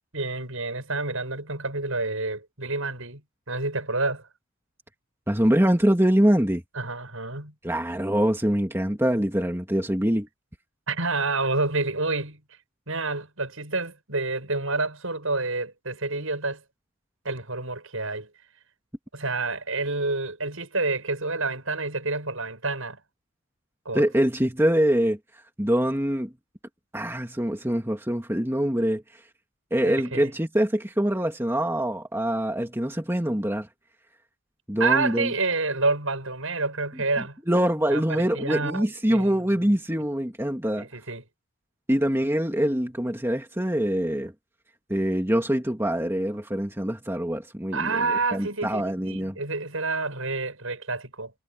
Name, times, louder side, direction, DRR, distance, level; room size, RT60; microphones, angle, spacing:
voice 1, 0.1-3.2 3.5-4.3 6.8-7.5 10.9-12.4 12.9-16.6 17.2-18.3 19.1-23.0 23.8-24.0 29.8-30.3 34.8-37.4 37.9-39.3 39.6-39.7 40.8-41.2 47.7-51.3, right 3 dB, 70° right, 7.9 m, -28 dB
voice 2, 5.3-6.6 7.6-10.3 23.9-26.3 26.9-29.2 29.7-33.7 34.7-35.3 37.5-40.9 41.9-44.3 44.9-49.4, equal, 10° right, 2.3 m, -24 dB
head